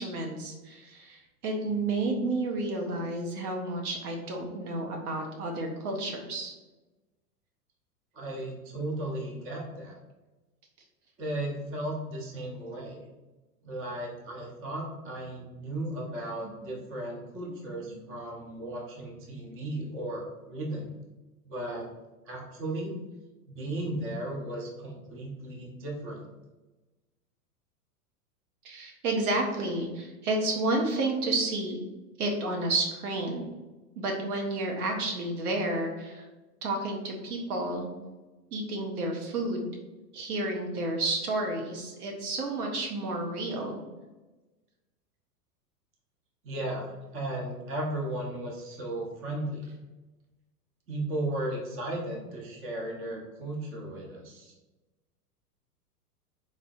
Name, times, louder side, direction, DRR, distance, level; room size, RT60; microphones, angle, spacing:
voice 1, 0.0-6.5 16.4-16.6 17.5-17.6 17.8-18.1 28.6-31.8 32.2-33.5 34.0-36.3 36.6-37.9 38.5-39.8 40.1-43.8, right 2 dB, 70° right, 1 dB, 0.9 m, -31 dB
voice 2, 8.1-10.0 11.2-13.0 13.6-20.9 21.4-21.9 22.3-22.9 23.5-26.2 46.4-46.9 47.1-49.7 50.9-54.5, right 1 dB, 25° right, -2 dB, 1.1 m, -35 dB
3.7 x 3.7 x 2.6 m, 1.1 s
hypercardioid pair, 100°, 47 cm